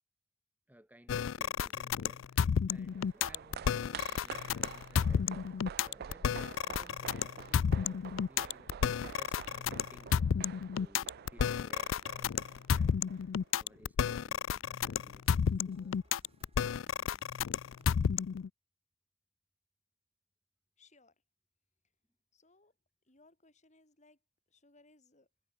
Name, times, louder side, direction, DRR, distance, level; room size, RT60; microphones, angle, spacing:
voice 1, 0.7-15.9, equal, 10° right, 2.4 m, -60 dB
sound 1, 1.1-18.5, left 7 dB, 80° left, 0.4 m, -32 dB
sound 2, 2.9-13.5 13.7-13.8, right 8 dB, 50° right, 0.3 m, -48 dB
sound 3, 13.2-17.9, right 1 dB, 30° right, 5.9 m, -70 dB
voice 2, 20.8-21.2 22.3-22.8 23.0-24.2 24.5-25.3, left 3 dB, 40° left, 5.7 m, -64 dB
head